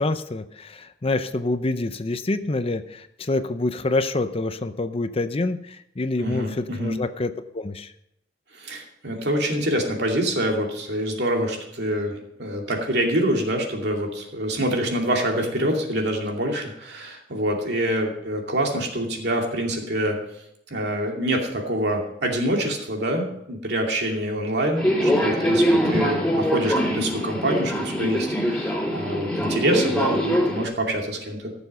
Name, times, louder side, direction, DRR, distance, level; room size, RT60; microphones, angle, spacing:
voice 1, 0.0-7.9, left 2 dB, 35° left, 11 dB, 0.6 m, -26 dB
voice 2, 6.2-7.0 8.5-20.2 20.7-31.5, right 1 dB, 65° right, 1 dB, 2.6 m, -26 dB
Subway metro underground, 24.8-30.7, equal, 5° left, 3.8 m, -23 dB
14.5 x 7.1 x 5.5 m, 0.77 s
head